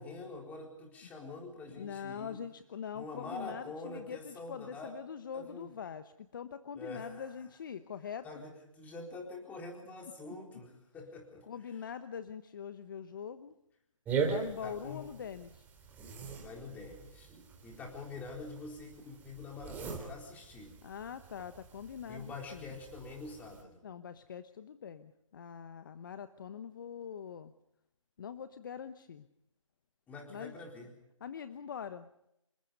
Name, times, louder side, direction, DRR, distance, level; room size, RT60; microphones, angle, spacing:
voice 1, 0.0-2.4 2.9-4.9 5.3-5.7 6.8-7.3 8.2-11.8 14.6-15.1 16.4-17.3 17.6-20.7 22.1-23.8 30.1-30.9, left 3 dB, 10° left, 1 dB, 4.2 m, -46 dB
voice 2, 1.7-8.2 11.5-13.5 14.2-15.6 20.8-22.8 23.8-27.5 28.2-29.3 30.3-30.5 31.2-32.3, left 7 dB, 40° left, 11 dB, 1.1 m, -43 dB
sound 1, 14.1-23.6, right 5 dB, 10° right, 3.5 m, -41 dB
27.5 x 23.5 x 5.3 m, 0.81 s
figure-of-eight pair, 150°, 17 cm